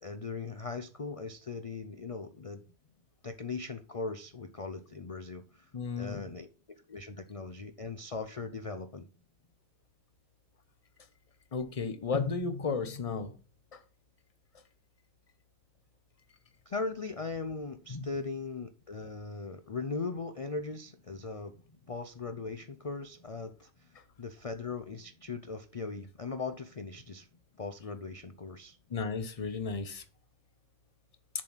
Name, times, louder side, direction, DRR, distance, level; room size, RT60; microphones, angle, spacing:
voice 1, 0.0-2.6 3.2-5.7 6.0-6.5 6.9-9.1 16.7-21.5 21.9-23.7 24.2-27.3 27.6-28.8, left 4 dB, 65° left, 0.3 m, -39 dB
voice 2, 5.7-6.2 11.5-13.3 13.7-13.8 17.9-18.1 28.9-30.0, left 4 dB, 30° left, 0.8 m, -33 dB
7.1 x 5.3 x 5.7 m
omnidirectional pair, 1.5 m